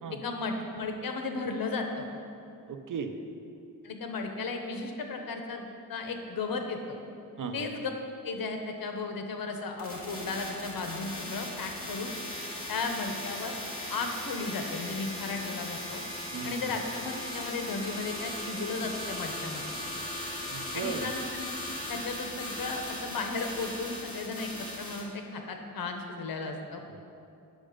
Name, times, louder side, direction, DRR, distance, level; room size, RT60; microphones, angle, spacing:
voice 1, 0.2-2.1 3.8-7.0 7.5-7.9 8.2-12.1 12.7-13.6 13.9-16.0 16.4-19.6 20.7-21.5 21.9-26.8, left 3 dB, 80° left, 4 dB, 1.1 m, -35 dB
voice 2, 2.7-3.1 7.4-7.7 16.3-16.6 20.5-21.1 26.9-27.0, right 6 dB, 65° right, 7 dB, 0.7 m, -36 dB
sound 1, 9.8-25.0, left 1 dB, 40° left, 2.2 m, -38 dB
8.7 x 6.5 x 5.1 m, 2.6 s
wide cardioid pair, 130°, 35 cm